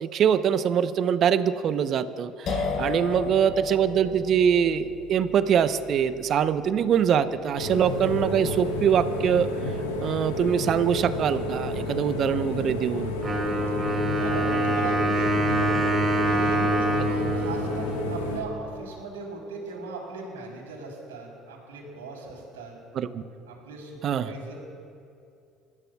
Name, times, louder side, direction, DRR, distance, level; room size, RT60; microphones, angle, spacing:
voice 1, 0.0-9.5 10.0-13.1 22.9-23.2 24.0-24.3, right 8 dB, 50° right, 12 dB, 0.7 m, -23 dB
sound 1, 2.5-10.0, left 4 dB, 55° left, 3.7 m, -36 dB
sound 2, 7.5-18.4, left 2 dB, 85° left, 1.9 m, -31 dB
Wind instrument woodwind instrument, 13.2-18.9, right 1 dB, 25° right, 3.9 m, -26 dB
voice 2, 14.0-15.8 16.2-22.7 23.5-24.6, right 3 dB, 85° right, -2 dB, 3.6 m, -39 dB
28.5 x 14.5 x 2.3 m, 2.5 s
hypercardioid pair, 65°, 0 cm